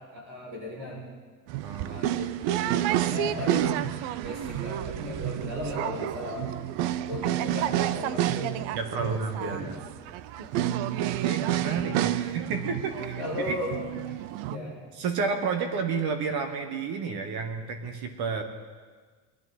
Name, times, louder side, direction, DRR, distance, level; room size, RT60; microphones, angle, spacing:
voice 1, 0.1-1.1 1.8-3.8 4.2-6.5 7.1-8.6 9.0-9.8 10.3-10.9 13.2-14.1 14.5-14.9, left 1 dB, 45° right, -3 dB, 5.8 m, -36 dB
sound 1, 1.5-14.6, right 12 dB, 80° right, 0.6 m, -29 dB
voice 2, 1.6-2.0 8.7-9.7 11.2-13.6 14.9-18.4, right 5 dB, 60° right, 6 dB, 1.4 m, -31 dB
20.5 x 12.0 x 4.2 m, 1.5 s
cardioid pair, 160°, 43 cm